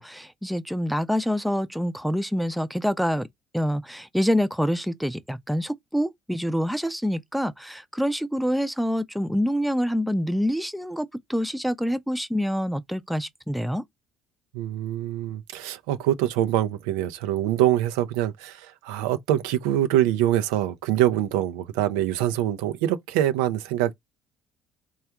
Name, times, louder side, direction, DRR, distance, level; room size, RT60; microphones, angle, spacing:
voice 1, 0.0-3.3 3.5-13.8, equal, ahead, 0.5 m, -26 dB
voice 2, 14.5-23.9, right 12 dB, 85° right, 0.4 m, -24 dB
3.3 x 2.4 x 4.4 m
hypercardioid pair, 65°, 0 cm